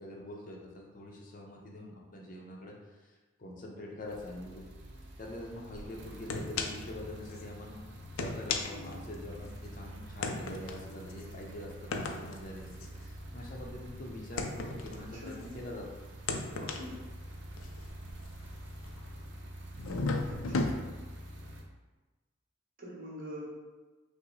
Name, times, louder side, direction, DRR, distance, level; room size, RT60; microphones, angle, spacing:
voice 1, 0.0-4.6 5.2-7.9 8.2-15.9, left 1 dB, 40° left, -1 dB, 0.6 m, -44 dB
sound 1, 4.1-21.6, right 1 dB, 60° right, 0.6 m, -47 dB
sound 2, 5.7-5.9 6.3-7.0 7.3-7.4 8.0-9.6 10.2-15.7 16.1-19.2 19.7-20.7, left 3 dB, 90° left, 0.4 m, -36 dB
voice 2, 15.0-15.5 16.5-17.0 20.2-20.7 22.8-23.5, equal, 40° right, -5 dB, 1.1 m, -45 dB
5.6 x 2.0 x 3.9 m, 1.2 s
head